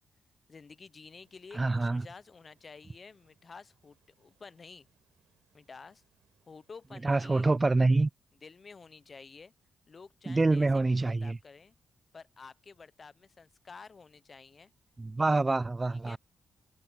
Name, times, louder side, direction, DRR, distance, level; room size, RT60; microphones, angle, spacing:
voice 1, 0.5-4.9 5.5-6.0 6.4-7.5 8.4-9.5 9.9-11.8 12.1-14.7 15.9-16.2, left 4 dB, 45° left, 0.9 m, -51 dB
sound 1, 1.1-7.4, right 11 dB, 85° right, 5.6 m, -75 dB
voice 2, 1.5-2.0 7.0-8.1 10.3-11.4 15.0-16.2, right 3 dB, 25° right, 0.5 m, -26 dB
cardioid pair, 60°, 0 cm